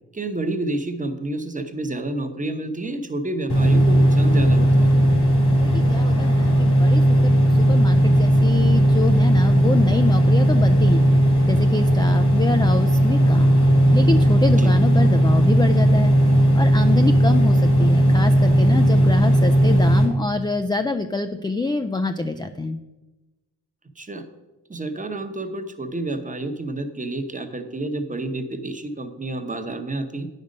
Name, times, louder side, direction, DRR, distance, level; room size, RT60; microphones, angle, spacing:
voice 1, 0.1-4.9 14.6-14.7 24.0-24.2 24.7-30.3, right 2 dB, 20° right, 7 dB, 0.9 m, -29 dB
sound 1, 3.5-20.1, equal, 70° left, 2.4 m, -16 dB
voice 2, 5.6-11.1 11.5-13.6 13.9-16.1 16.5-22.8, left 3 dB, 10° left, 8 dB, 0.3 m, -26 dB
9.3 x 5.3 x 5.2 m, 1.1 s
cardioid pair, 70°, 39 cm